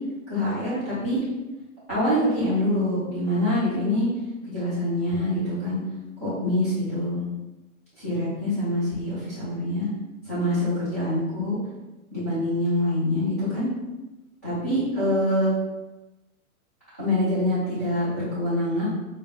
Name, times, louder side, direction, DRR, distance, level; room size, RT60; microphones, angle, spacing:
voice 1, 0.3-1.2 1.9-4.1 4.5-5.8 6.2-7.2 8.0-9.9 10.3-11.6 12.1-13.7 14.4-15.5 17.0-18.8, left 1 dB, 10° right, -16 dB, 0.4 m, -25 dB
5.0 x 2.2 x 3.1 m, 1.1 s
hypercardioid pair, 165°, 43 cm